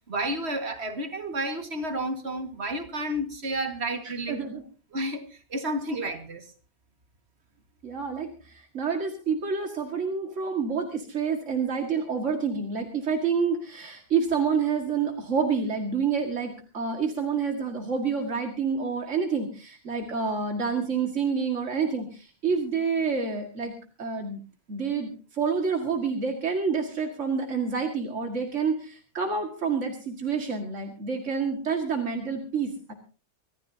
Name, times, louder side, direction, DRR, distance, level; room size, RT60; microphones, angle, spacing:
voice 1, 0.1-4.4 4.9-5.2 5.5-6.5, right 1 dB, 60° right, 2.1 m, -31 dB
voice 2, 4.0-4.6 7.8-23.7 24.0-24.4 24.7-32.9, right 5 dB, 90° right, 2.4 m, -28 dB
25.5 x 14.0 x 2.8 m
omnidirectional pair, 1.2 m